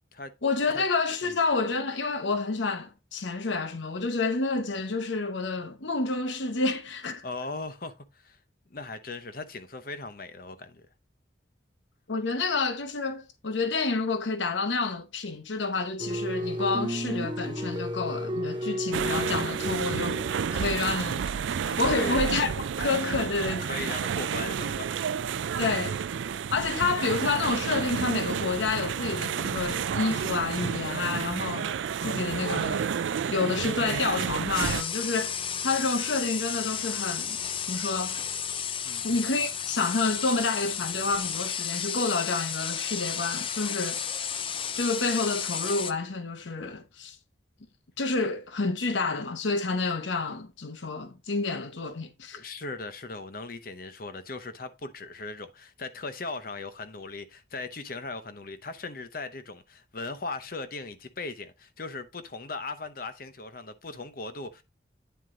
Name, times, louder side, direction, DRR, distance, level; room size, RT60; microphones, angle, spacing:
voice 1, 0.4-7.2 12.1-20.2 20.5-22.5 22.8-23.6 25.6-26.0 26.5-32.9 33.3-35.4 35.6-37.4 37.6-38.2 39.0-44.0 44.7-47.2 48.0-52.4, left 3 dB, 80° left, 0.9 m, -29 dB
voice 2, 7.2-8.4 8.7-10.9 21.9-22.2 23.1-23.2 23.6-25.0 38.8-39.2 52.3-64.6, left 3 dB, 50° left, 0.8 m, -38 dB
sound 1, 16.0-20.6, equal, 25° right, 0.7 m, -32 dB
sound 2, 18.9-34.8, right 7 dB, 85° right, 0.4 m, -30 dB
sound 3, 34.5-45.9, left 8 dB, 30° left, 0.4 m, -33 dB
9.5 x 4.5 x 3.7 m
head